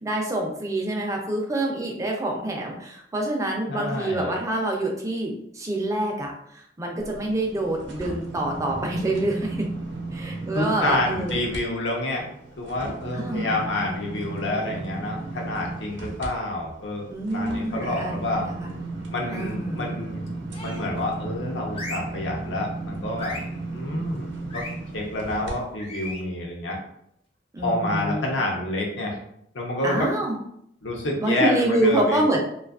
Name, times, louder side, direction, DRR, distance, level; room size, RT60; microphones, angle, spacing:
voice 1, 0.0-6.3 6.8-9.7 10.1-11.5 13.1-13.6 17.1-18.8 19.3-19.9 27.5-28.3 29.8-30.4 31.2-32.4, right 1 dB, 15° right, 0 dB, 0.4 m, -26 dB
voice 2, 3.7-4.4 10.5-18.5 19.1-20.2 20.6-23.4 23.7-24.6 24.9-26.8 27.6-29.2 29.5-30.1 30.8-32.2, left 1 dB, 80° left, -1 dB, 0.7 m, -28 dB
sound 1, 7.0-11.6 12.0-25.5 26.0-26.1, right 2 dB, 70° right, 0.6 m, -35 dB
sound 2, 17.7-18.2 19.2-19.6 20.5-21.0 21.7-22.2 23.2-23.6 24.5-24.8 25.8-26.3, left 2 dB, 30° left, 0.5 m, -38 dB
2.6 x 2.3 x 2.3 m, 0.73 s
head